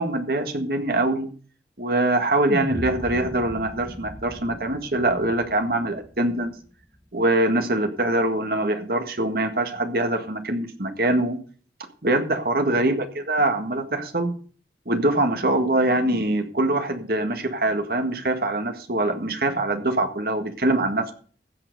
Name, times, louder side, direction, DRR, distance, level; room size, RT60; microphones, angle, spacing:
voice 1, 0.0-1.3 1.8-6.5 7.1-11.4 12.0-14.4 14.9-21.1, right 2 dB, 55° right, 7 dB, 1.7 m, -23 dB
sound 1, 2.5-6.8, equal, ahead, 1.5 m, -37 dB
15.5 x 5.9 x 6.6 m, 0.43 s
head